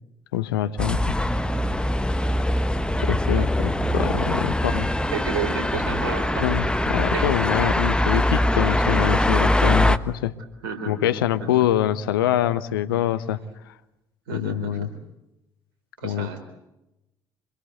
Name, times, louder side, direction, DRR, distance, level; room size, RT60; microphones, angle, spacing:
voice 1, 0.3-1.2 3.0-4.9 6.4-10.3 10.9-13.4 14.3-14.9 16.0-16.4, left 12 dB, 75° left, 14 dB, 1.0 m, -25 dB
sound 1, 0.8-10.0, left 1 dB, 10° left, 1.2 m, -22 dB
voice 2, 5.1-6.6 7.1-7.2 10.6-11.0 14.3-14.9 16.0-16.4, right 6 dB, 75° right, 8 dB, 4.2 m, -31 dB
26.5 x 22.0 x 8.1 m, 0.92 s
figure-of-eight pair, 55°, 12 cm